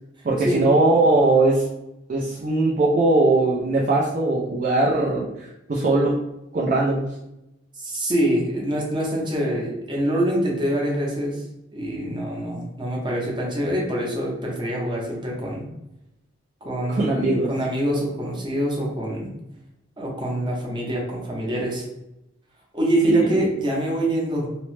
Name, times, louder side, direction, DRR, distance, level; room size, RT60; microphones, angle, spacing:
voice 1, 0.2-1.6 2.1-5.3 5.7-6.2 6.5-7.1 16.9-17.5 23.0-23.3, right 2 dB, 45° right, -4 dB, 0.4 m, -20 dB
voice 2, 7.8-11.4 11.7-15.7 16.6-19.3 20.0-21.8 22.7-24.5, right 1 dB, 25° right, -2 dB, 0.7 m, -25 dB
2.9 x 2.0 x 3.1 m, 0.90 s
head